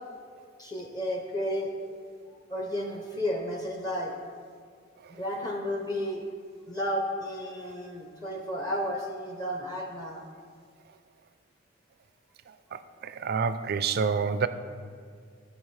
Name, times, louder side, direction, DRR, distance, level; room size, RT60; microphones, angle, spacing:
voice 1, 0.6-2.0 2.5-4.1 5.1-6.2 6.7-10.3, equal, 20° left, 0 dB, 0.7 m, -32 dB
voice 2, 13.0-14.5, right 5 dB, 50° right, 12 dB, 0.4 m, -27 dB
14.0 x 5.7 x 3.2 m, 2.1 s
head